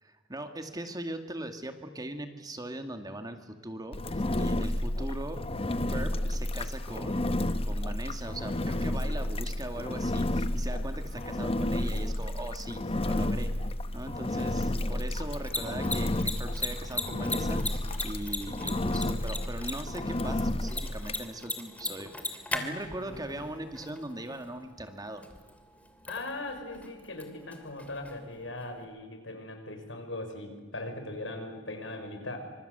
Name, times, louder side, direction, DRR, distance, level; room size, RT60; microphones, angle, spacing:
voice 1, 0.0-5.4 5.9-13.5 13.9-25.2, right 1 dB, 20° right, 6 dB, 2.2 m, -40 dB
Engine, 3.9-21.2, left 1 dB, 30° left, 0.9 m, -31 dB
sound 1, 10.8-18.2, right 3 dB, 50° right, 3.7 m, -55 dB
Mechanisms, 15.2-28.8, left 2 dB, 10° left, 2.8 m, -40 dB
voice 2, 22.5-23.4 26.1-32.4, left 2 dB, 75° left, 5 dB, 5.9 m, -40 dB
26.5 x 26.0 x 8.2 m, 1.3 s
head